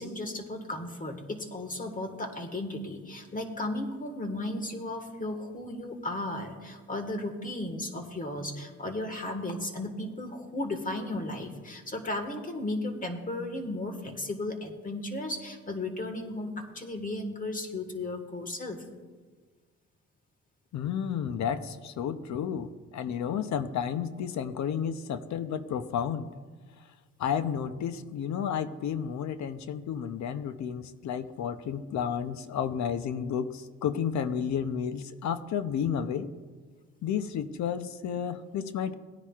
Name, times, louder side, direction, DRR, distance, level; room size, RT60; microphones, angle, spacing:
voice 1, 0.0-18.8, left 1 dB, 25° left, 6 dB, 1.6 m, -35 dB
voice 2, 20.7-26.3 27.2-36.3 37.0-38.9, left 8 dB, 65° left, 12 dB, 0.7 m, -32 dB
17.5 x 9.9 x 2.4 m, 1.4 s
cardioid pair, 90°, 30 cm